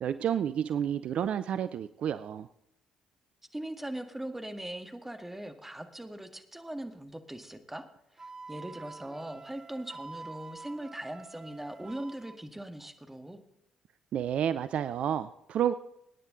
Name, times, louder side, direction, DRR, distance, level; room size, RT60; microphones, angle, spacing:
voice 1, 0.0-2.5 14.1-15.7, right 9 dB, 55° right, 14 dB, 0.5 m, -30 dB
voice 2, 3.5-7.9 8.1-13.4, right 1 dB, 10° right, 6 dB, 1.9 m, -40 dB
Wind instrument woodwind instrument, 8.2-12.4, right 3 dB, 30° right, 1.3 m, -47 dB
22.0 x 10.0 x 3.9 m, 0.80 s
hypercardioid pair, 45°, 2 cm